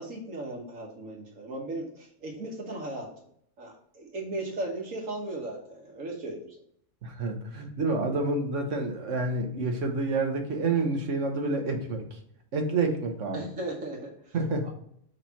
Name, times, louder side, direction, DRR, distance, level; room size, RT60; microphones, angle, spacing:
voice 1, 0.0-3.1 3.6-6.6 13.3-14.4 14.6-14.7, right 2 dB, 90° right, 0 dB, 1.7 m, -37 dB
voice 2, 7.0-12.2 12.5-13.5 14.3-14.7, right 3 dB, 70° right, 4 dB, 1.4 m, -28 dB
6.6 x 3.3 x 5.7 m, 0.67 s
omnidirectional pair, 1.3 m